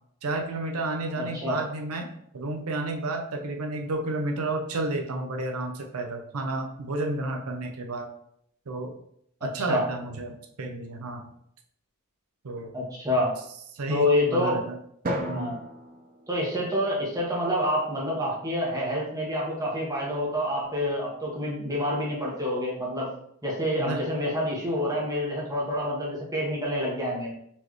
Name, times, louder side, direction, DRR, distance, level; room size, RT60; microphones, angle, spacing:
voice 1, 0.2-2.1 2.3-8.1 8.7-9.0 9.4-11.2 12.4-12.7 13.7-14.8 15.3-15.6 23.7-24.1, right 2 dB, 90° right, 3 dB, 0.6 m, -31 dB
voice 2, 1.2-1.5 9.4-9.8 12.7-13.4 13.9-14.6 15.3-15.6 16.3-23.1 23.4-27.3, left 1 dB, 15° right, -4 dB, 1.2 m, -27 dB
Drum, 15.0-17.3, right 1 dB, 40° right, 0.5 m, -35 dB
4.3 x 3.3 x 3.0 m, 0.71 s
head